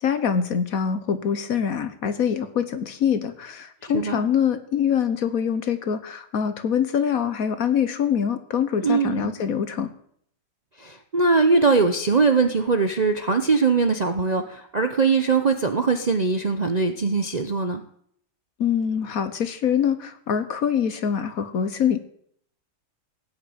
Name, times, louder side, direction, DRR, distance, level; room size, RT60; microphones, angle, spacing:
voice 1, 0.0-9.9 18.6-22.0, left 8 dB, 60° left, 11 dB, 1.4 m, -24 dB
voice 2, 3.8-4.2 8.8-9.3 10.8-17.8, right 4 dB, 40° right, 6 dB, 0.6 m, -21 dB
17.5 x 6.6 x 8.8 m, 0.67 s
omnidirectional pair, 1.8 m